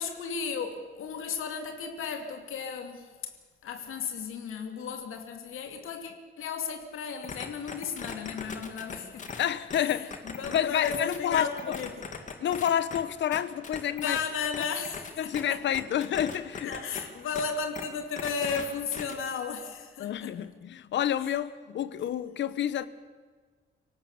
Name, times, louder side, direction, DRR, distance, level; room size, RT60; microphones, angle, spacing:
voice 1, 0.0-3.1 3.6-9.4 10.2-12.0 13.9-15.6 16.6-20.3 21.2-21.3, left 6 dB, 75° left, 2.5 m, -34 dB
sound 1, 7.2-10.6 10.8-13.0 13.3-15.4 15.7-17.0 17.3-17.4 17.7-17.8 18.2-18.7 18.9-19.1, left 5 dB, 35° left, 2.1 m, -39 dB
voice 2, 9.4-11.8 12.4-14.2 15.2-16.7 20.0-22.9, left 10 dB, 60° left, 1.0 m, -29 dB
25.5 x 17.5 x 7.1 m
cardioid pair, 175°, 21 cm